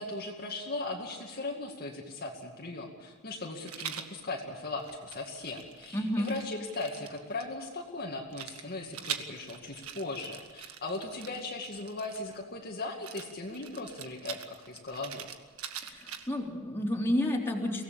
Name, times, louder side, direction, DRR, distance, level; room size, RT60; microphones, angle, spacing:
voice 1, 0.0-15.3, left 2 dB, 45° left, 0 dB, 2.3 m, -38 dB
Rattle, 3.7-4.1 4.8-7.4 8.3-12.4 13.0-16.5, right 9 dB, 85° right, 1.7 m, -43 dB
voice 2, 5.9-6.3 15.8-17.8, left 1 dB, 10° left, -1 dB, 3.7 m, -30 dB
24.5 x 17.5 x 7.2 m, 1.5 s
head